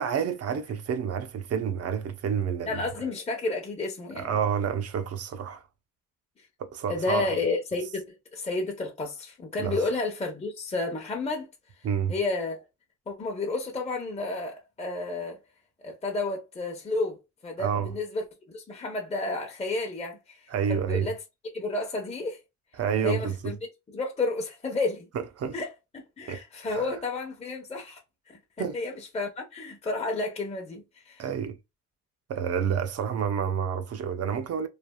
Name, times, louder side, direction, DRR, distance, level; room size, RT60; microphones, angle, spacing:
voice 1, 0.0-2.8 4.2-5.6 6.6-7.4 9.6-9.8 11.8-12.1 17.6-18.0 20.5-21.1 22.8-23.5 25.1-25.6 26.3-26.4 26.7-26.9 28.6-28.8 31.2-31.6 32.3-34.7, right 7 dB, 55° right, 0.6 m, -29 dB
voice 2, 2.7-4.3 6.9-8.0 8.3-11.5 12.1-12.6 13.1-15.4 15.8-17.2 17.4-20.4 20.7-21.2 21.5-22.4 23.0-23.6 23.9-25.1 25.5-28.0 28.3-31.2, left 3 dB, 20° left, 0.7 m, -31 dB
3.3 x 2.3 x 2.2 m
cardioid pair, 90°, 30 cm